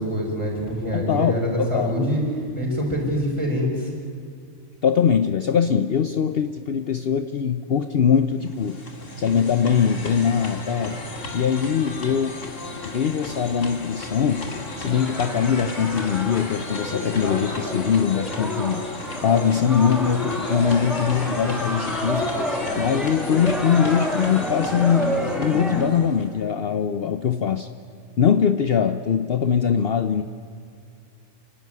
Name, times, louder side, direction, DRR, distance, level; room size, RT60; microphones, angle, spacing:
voice 1, 0.0-2.2 2.5-3.9, equal, 25° right, -2 dB, 6.6 m, -25 dB
voice 2, 0.9-1.9 4.8-8.8 9.2-11.0 11.3-12.4 12.8-14.5 14.8-18.8 19.2-22.3 22.8-27.7 28.2-30.2, left 7 dB, 55° left, 8 dB, 0.9 m, -22 dB
sound 1, 8.3-26.4, left 3 dB, 80° left, 2.6 m, -33 dB
sound 2, 14.5-25.9, equal, ahead, 2.2 m, -30 dB
29.5 x 13.0 x 9.6 m, 2.4 s
omnidirectional pair, 1.3 m